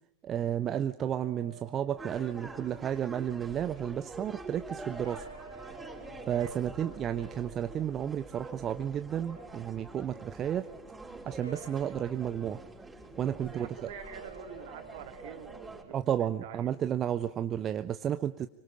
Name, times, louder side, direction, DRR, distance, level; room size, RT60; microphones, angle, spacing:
voice 1, 0.2-5.2 6.3-10.7 11.3-12.6 13.2-13.7 15.9-18.5, right 10 dB, 30° right, 11 dB, 0.8 m, -32 dB
sound 1, 1.1-3.1 4.9-8.6 9.1-10.1 11.3-12.4 13.9-16.6, right 3 dB, 90° right, 2.1 m, -53 dB
sound 2, 2.0-15.8, right 2 dB, 10° right, 6.0 m, -46 dB
voice 2, 6.3-6.9 13.4-16.7, right 9 dB, 55° right, 5 dB, 3.6 m, -47 dB
26.0 x 25.0 x 5.1 m, 0.83 s
figure-of-eight pair, 90°, 0 cm